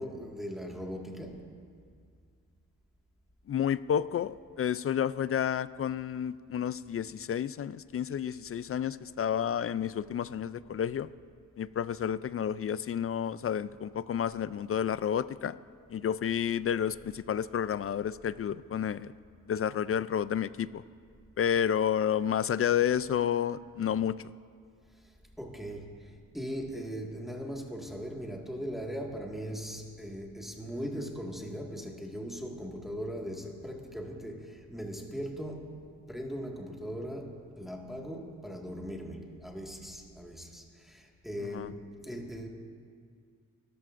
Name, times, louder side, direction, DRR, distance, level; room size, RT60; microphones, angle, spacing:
voice 1, 0.0-1.6 24.9-42.5, equal, ahead, 1.8 m, -39 dB
voice 2, 3.5-11.1 11.6-15.6 15.9-19.1 19.5-20.8 21.4-24.2 41.5-41.7, left 9 dB, 40° left, 0.4 m, -30 dB
28.5 x 13.5 x 2.6 m
cardioid pair, 65°, 35 cm